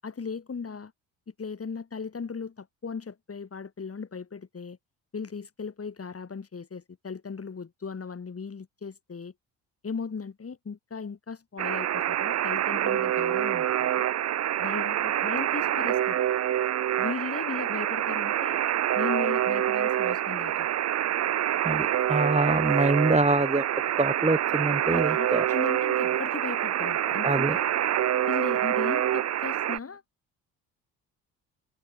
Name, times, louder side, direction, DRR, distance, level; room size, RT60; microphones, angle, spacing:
voice 1, 0.0-0.9 1.3-4.8 5.1-9.3 9.8-14.1 14.6-16.2 17.0-18.6 18.9-20.7 24.9-27.6 28.3-30.0, left 5 dB, 35° left, 7.5 m, -37 dB
Alarm, 11.6-29.8, right 11 dB, 40° right, 0.7 m, -26 dB
voice 2, 21.6-23.7 24.0-25.4 27.1-27.6, right 2 dB, 15° right, 3.9 m, -25 dB
hypercardioid pair, 55°, 41 cm